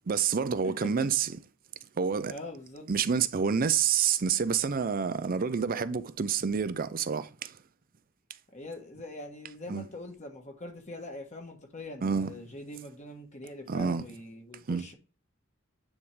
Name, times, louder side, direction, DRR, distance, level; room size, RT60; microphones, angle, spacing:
voice 1, 0.1-1.3 2.0-2.3 2.9-7.6 9.7-9.9 12.0-12.3 13.7-14.0 14.7-14.9, right 6 dB, 45° right, 0.5 m, -28 dB
voice 2, 0.6-1.1 2.3-2.9 8.5-15.0, left 1 dB, 35° left, 1.3 m, -43 dB
9.4 x 3.6 x 3.3 m
head